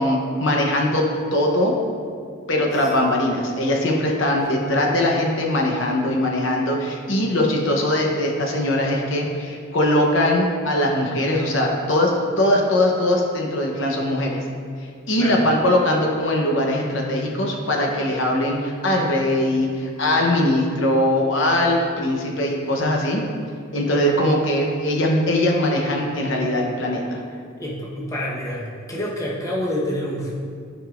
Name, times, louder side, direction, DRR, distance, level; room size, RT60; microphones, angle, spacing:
voice 1, 0.0-1.7 2.5-14.4 15.1-23.2 23.7-27.2, left 1 dB, 60° left, 0 dB, 0.9 m, -21 dB
voice 2, 27.6-30.3, left 1 dB, 15° left, -5 dB, 1.1 m, -27 dB
13.5 x 5.1 x 2.5 m, 2.2 s
head